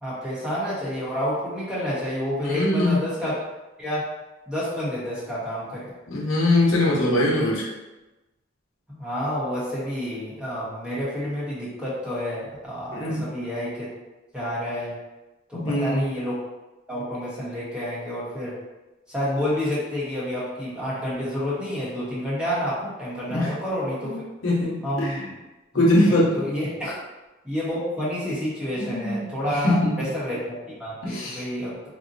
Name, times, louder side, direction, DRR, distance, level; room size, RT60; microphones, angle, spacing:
voice 1, 0.0-3.4 3.8-4.0 4.5-5.9 8.9-13.9 14.3-14.9 15.5-16.4 16.9-18.5 19.1-24.2 24.8-25.3 25.7-26.7 27.4-30.5 30.8-31.8, equal, 5° right, -9 dB, 0.9 m, -29 dB
voice 2, 2.5-3.0 6.1-7.6 12.9-13.2 15.5-16.0 23.3-23.5 24.0-24.2 24.4-25.1 25.7-26.4 28.7-29.2 29.6-29.9 31.0-31.4, left 1 dB, 85° left, -5 dB, 0.9 m, -22 dB
3.9 x 2.1 x 2.6 m, 1.1 s
head